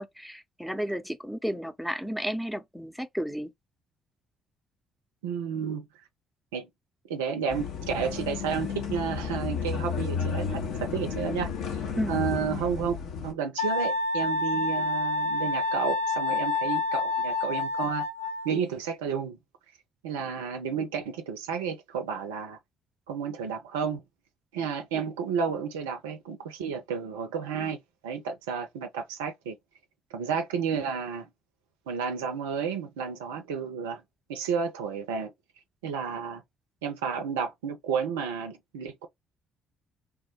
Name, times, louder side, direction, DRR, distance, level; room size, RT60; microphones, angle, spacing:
voice 1, 0.0-3.5 12.0-12.2, equal, ahead, 0.7 m, -32 dB
voice 2, 5.2-5.9 6.5-6.7 7.1-11.5 12.1-13.0 13.2-18.1 18.4-19.4 20.0-22.6 23.1-24.0 24.5-27.8 28.0-29.6 30.1-31.3 31.9-34.0 34.3-35.3 35.8-36.4 36.8-39.1, right 6 dB, 75° right, 0.5 m, -31 dB
sound 1, 7.5-13.3, left 6 dB, 60° left, 0.7 m, -32 dB
Wind instrument woodwind instrument, 13.6-18.6, left 3 dB, 90° left, 0.8 m, -28 dB
3.3 x 2.1 x 3.0 m
figure-of-eight pair, 45°, 0 cm